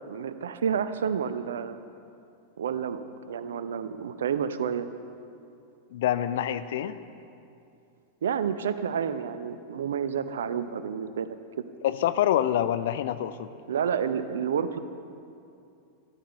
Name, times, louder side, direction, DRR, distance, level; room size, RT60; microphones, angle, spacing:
voice 1, 0.1-1.8 2.6-4.9 8.2-11.7 13.7-14.8, right 7 dB, 65° right, 12 dB, 0.7 m, -30 dB
voice 2, 5.9-6.9 11.8-13.5, left 11 dB, 55° left, 12 dB, 0.6 m, -26 dB
14.0 x 13.0 x 5.6 m, 2.6 s
figure-of-eight pair, 90°, 0 cm